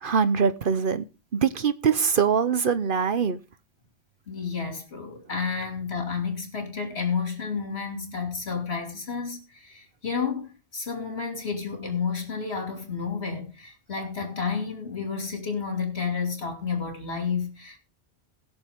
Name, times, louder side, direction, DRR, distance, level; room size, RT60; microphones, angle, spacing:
voice 1, 0.0-1.0 1.3-3.4, right 6 dB, 55° right, 1.0 m, -23 dB
voice 2, 4.3-17.8, left 5 dB, 70° left, 2.9 m, -31 dB
20.5 x 6.9 x 3.6 m
omnidirectional pair, 1.1 m